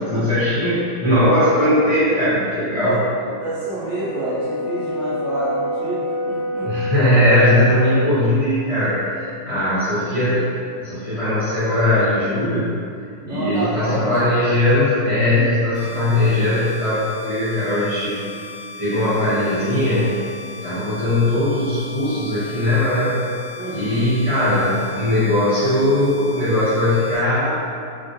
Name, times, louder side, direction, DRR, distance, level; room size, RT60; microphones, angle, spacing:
voice 1, 0.0-3.0 6.6-12.8 13.3-18.2 18.8-20.2 20.6-23.2 23.7-27.7, left 1 dB, 35° left, -14 dB, 0.5 m, -19 dB
voice 2, 2.8-6.7 13.2-14.3 15.9-16.1 23.6-24.1, right 2 dB, 75° right, -11 dB, 0.6 m, -28 dB
Brass instrument, 3.8-8.1, left 1 dB, 85° left, 1.3 m, -26 dB
sound 1, 15.7-27.2, left 1 dB, 65° left, 1.4 m, -38 dB
3.0 x 2.3 x 2.6 m, 2.4 s
omnidirectional pair, 2.0 m